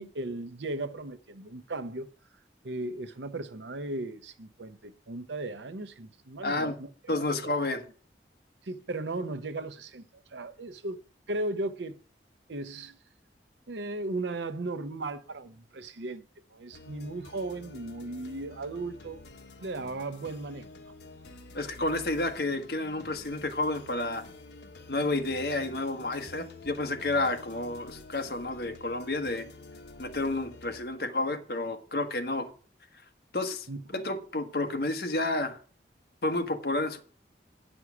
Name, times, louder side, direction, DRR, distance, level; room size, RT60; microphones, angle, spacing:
voice 1, 0.0-2.1 2.6-6.9 7.2-7.3 8.6-11.0 11.3-12.0 12.5-13.0 13.7-16.2 16.5-19.2 19.6-20.7 33.7-34.0, right 2 dB, 85° right, 0.8 m, -36 dB
voice 2, 6.4-6.8 7.1-7.8 21.5-24.3 24.9-29.5 30.0-32.5 33.3-33.7 33.9-35.6 36.2-37.0, left 2 dB, 60° left, 1.3 m, -30 dB
sound 1, 16.7-30.9, left 3 dB, 75° left, 1.2 m, -49 dB
9.7 x 6.2 x 6.0 m
head